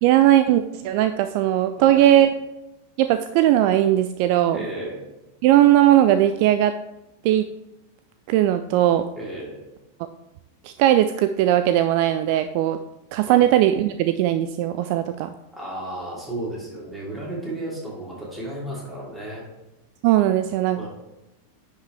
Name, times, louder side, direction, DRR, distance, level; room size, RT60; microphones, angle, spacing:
voice 1, 0.0-2.3 3.0-4.6 5.4-6.8 7.2-7.5 8.3-9.0 10.6-12.8 13.1-15.3 20.0-20.9, right 12 dB, 45° right, 10 dB, 0.3 m, -18 dB
voice 2, 1.8-2.1 4.5-5.0 9.2-9.6 13.2-13.5 15.5-19.5 20.8-20.9, right 1 dB, 5° right, -5 dB, 3.0 m, -33 dB
9.9 x 5.2 x 3.3 m, 0.96 s
figure-of-eight pair, 90°, 0 cm